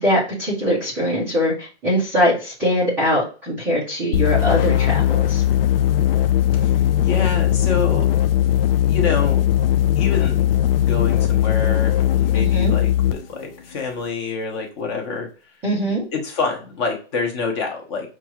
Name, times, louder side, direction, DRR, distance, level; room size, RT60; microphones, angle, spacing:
voice 1, 0.0-5.4 12.3-12.8 15.6-16.0, equal, 5° right, -11 dB, 0.4 m, -22 dB
sound 1, 4.1-13.2, left 11 dB, 55° left, 0.4 m, -18 dB
voice 2, 6.5-8.1 8.8-9.4 10.0-10.5 10.8-15.3 16.1-18.1, left 4 dB, 25° left, 2 dB, 0.7 m, -27 dB
5.8 x 2.4 x 2.9 m, 0.35 s
hypercardioid pair, 165°, 35 cm